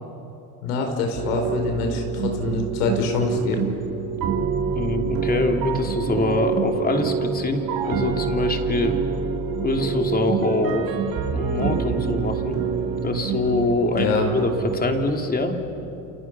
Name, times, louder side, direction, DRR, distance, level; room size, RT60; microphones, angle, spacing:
voice 1, 0.6-3.7 14.0-14.3, left 4 dB, 80° left, 3 dB, 5.0 m, -25 dB
sound 1, 1.1-15.1, right 6 dB, 50° right, 4.0 m, -26 dB
voice 2, 4.7-9.0 9.6-10.9 11.3-12.6 13.0-15.5, left 2 dB, 20° left, 4 dB, 3.1 m, -24 dB
29.5 x 28.5 x 6.2 m, 2.9 s
supercardioid pair, 100°, 44 cm